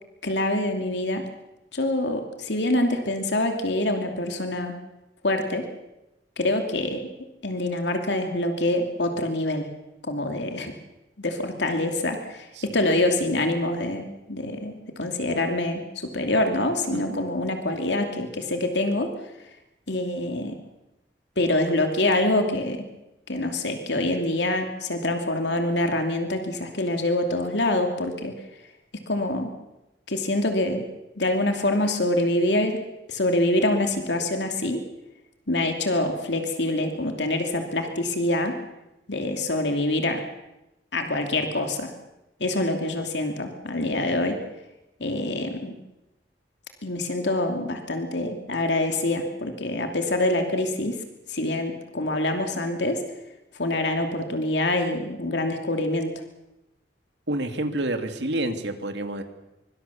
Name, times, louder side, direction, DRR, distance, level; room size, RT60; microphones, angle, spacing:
voice 1, 0.2-1.2 1.7-4.7 5.2-5.6 6.4-7.1 7.4-9.7 10.0-10.7 11.2-19.1 19.9-20.6 21.4-22.9 23.3-28.3 29.1-29.5 30.1-30.8 31.2-32.8 33.1-34.8 35.5-38.5 39.1-40.2 40.9-41.9 42.4-44.4 45.0-45.7 46.8-51.0 51.3-53.0 53.6-56.1, left 1 dB, 75° left, 5 dB, 2.7 m, -25 dB
voice 2, 57.3-59.2, right 1 dB, 75° right, 6 dB, 2.5 m, -28 dB
24.5 x 23.5 x 7.2 m, 0.94 s
head